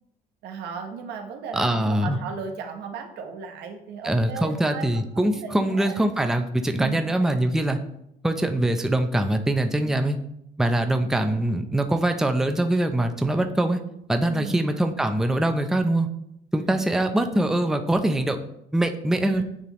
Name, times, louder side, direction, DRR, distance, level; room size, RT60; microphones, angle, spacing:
voice 1, 0.4-4.9 5.1-6.0 6.8-7.0 7.5-7.8 14.2-14.6 19.2-19.4, right 6 dB, 85° right, 4 dB, 1.0 m, -36 dB
voice 2, 1.5-2.2 4.0-7.8 8.2-10.2 10.6-13.8 14.1-16.1 16.5-18.4 18.7-19.4, right 1 dB, 5° right, 6 dB, 0.5 m, -23 dB
9.3 x 3.3 x 3.0 m, 0.78 s
cardioid pair, 110°, 17 cm